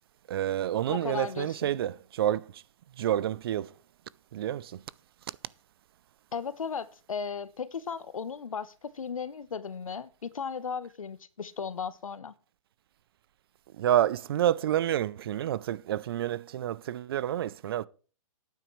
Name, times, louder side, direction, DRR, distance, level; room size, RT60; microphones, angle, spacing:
voice 1, 0.3-2.6 3.0-3.7 4.3-4.8 13.7-17.9, right 11 dB, 45° right, 0.5 m, -29 dB
voice 2, 0.9-1.7 6.3-12.3, left 6 dB, 85° left, 0.9 m, -36 dB
12.5 x 9.2 x 3.1 m
hypercardioid pair, 145°, 17 cm